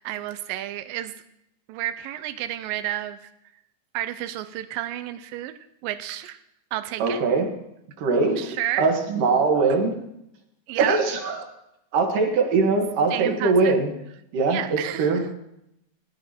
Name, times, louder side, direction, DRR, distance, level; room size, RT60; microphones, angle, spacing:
voice 1, 0.0-1.1 1.7-3.2 3.9-5.5 5.8-6.4 6.7-7.2 8.4-8.9 10.7-11.0 13.1-13.8 14.5-15.2, right 13 dB, 90° right, 11 dB, 2.3 m, -31 dB
voice 2, 7.0-7.5 8.0-8.5 8.8-10.0 10.8-11.4 11.9-13.9 14.3-15.4, right 4 dB, 70° right, 2 dB, 3.2 m, -22 dB
18.0 x 9.9 x 4.4 m, 0.80 s
omnidirectional pair, 3.9 m